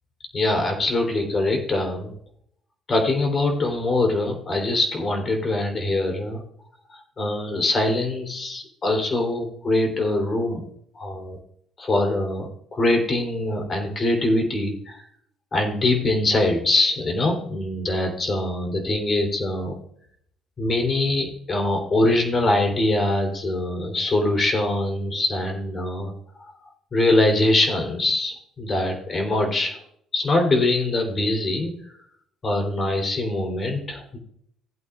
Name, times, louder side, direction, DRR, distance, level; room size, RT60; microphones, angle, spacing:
voice 1, 0.3-2.1 2.9-6.4 7.2-10.6 10.9-11.4 11.8-15.0 15.5-19.8 20.6-26.1 26.4-26.5 26.9-29.8 30.1-31.7 32.4-34.2, left 2 dB, 40° left, 2 dB, 3.1 m, -23 dB
16.5 x 8.4 x 2.4 m, 0.68 s
supercardioid pair, 80°, 0 cm